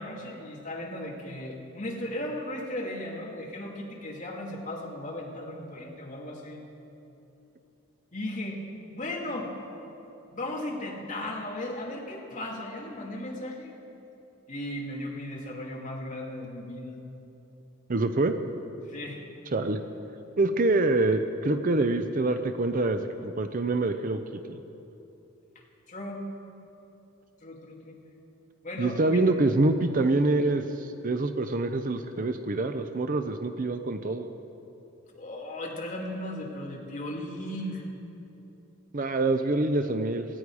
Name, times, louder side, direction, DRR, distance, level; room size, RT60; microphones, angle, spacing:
voice 1, 0.0-6.6 8.1-8.6 8.9-9.5 10.3-13.7 14.5-17.0 18.9-19.2 25.9-26.2 27.4-28.0 28.6-29.2 35.1-37.8, left 1 dB, 35° left, -2 dB, 2.4 m, -36 dB
voice 2, 17.9-18.4 19.5-19.8 20.4-24.2 24.5-24.6 28.8-34.3 38.9-40.3, right 2 dB, 40° right, 8 dB, 0.6 m, -25 dB
18.0 x 15.5 x 4.8 m, 2.9 s
head